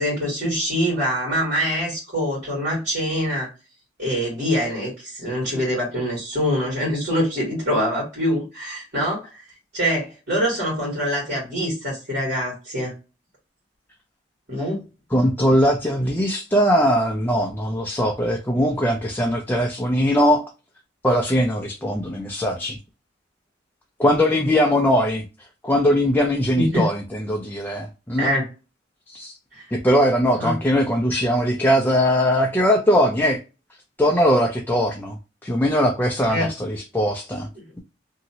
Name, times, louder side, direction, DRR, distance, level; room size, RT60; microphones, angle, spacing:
voice 1, 0.0-3.5 4.0-9.4 9.7-12.9 14.5-14.8 26.6-26.9 28.2-28.5 29.5-29.6 30.4-30.6 36.3-36.5 37.6-37.7, equal, 55° right, 1.9 m, -24 dB
voice 2, 15.1-20.4 21.0-22.8 24.0-25.3 25.6-28.3 29.1-29.3 29.7-33.4 34.0-35.2 35.4-37.5, equal, 10° left, 0.4 m, -20 dB
2.9 x 2.7 x 2.7 m
head